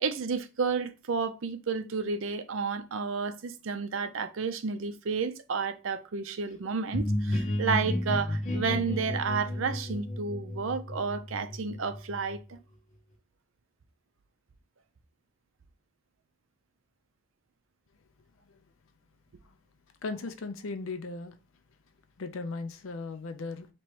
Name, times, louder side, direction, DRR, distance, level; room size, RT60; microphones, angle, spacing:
voice 1, 0.0-12.6, right 5 dB, 70° right, 0.5 m, -31 dB
sound 1, 6.9-12.5, left 1 dB, 35° left, 0.7 m, -32 dB
voice 2, 20.0-21.3 22.2-23.7, left 3 dB, 75° left, 0.5 m, -37 dB
3.0 x 3.0 x 4.6 m
head